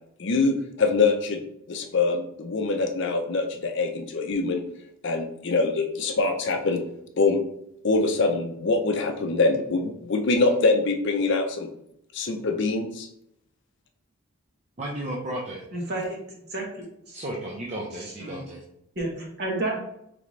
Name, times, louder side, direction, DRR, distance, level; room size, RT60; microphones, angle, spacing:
voice 1, 0.2-1.4 1.7-4.6 5.0-6.8 7.2-7.4 7.8-11.7 12.1-13.1, left 3 dB, 55° left, 4 dB, 0.5 m, -24 dB
voice 2, 14.8-15.6 17.1-18.6, right 1 dB, 30° right, -2 dB, 0.5 m, -33 dB
voice 3, 15.7-16.2 16.5-16.7 17.1-17.2 18.3-18.4 18.9-19.8, right 2 dB, 45° right, -2 dB, 1.1 m, -30 dB
3.8 x 3.3 x 3.1 m, 0.78 s
head